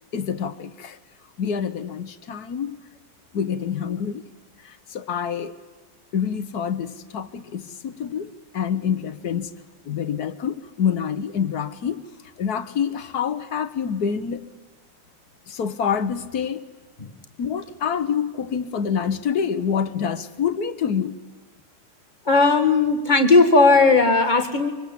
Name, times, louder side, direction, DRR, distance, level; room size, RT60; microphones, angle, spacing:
voice 1, 0.1-1.0 1.4-2.8 3.3-4.2 4.6-5.5 6.1-9.5 9.9-12.0 12.4-14.5 15.5-16.6 17.4-21.2, left 7 dB, 65° left, 12 dB, 1.6 m, -26 dB
voice 2, 22.3-24.7, left 3 dB, 25° left, 4 dB, 2.0 m, -16 dB
25.0 x 24.5 x 8.5 m, 1.3 s
omnidirectional pair, 1.9 m